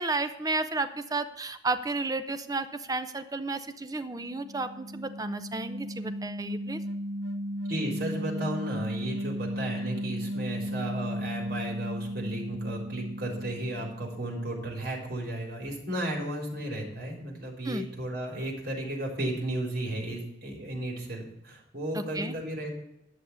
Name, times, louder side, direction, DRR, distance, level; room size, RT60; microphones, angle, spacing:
voice 1, 0.0-6.8 17.6-17.9 21.9-22.3, right 3 dB, 20° right, 10 dB, 0.6 m, -32 dB
sound 1, 4.2-14.3, equal, 80° right, 0.8 m, -35 dB
voice 2, 7.7-22.7, right 1 dB, 55° right, 0 dB, 3.8 m, -34 dB
11.0 x 6.5 x 7.0 m, 0.82 s
head